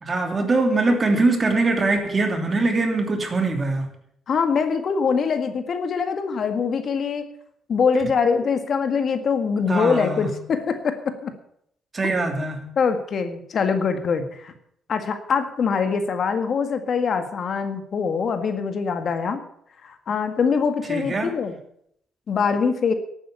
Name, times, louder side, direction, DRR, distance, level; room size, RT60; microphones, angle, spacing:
voice 1, 0.0-3.9 9.7-10.3 11.9-12.7 20.9-21.3, right 3 dB, 35° right, 4 dB, 3.0 m, -22 dB
voice 2, 4.3-7.3 7.7-11.3 12.8-14.5 14.9-19.4 19.8-21.6 22.3-22.9, left 5 dB, 55° left, 8 dB, 1.7 m, -23 dB
11.5 x 9.2 x 8.3 m, 0.70 s
cardioid pair, 90°, 0 cm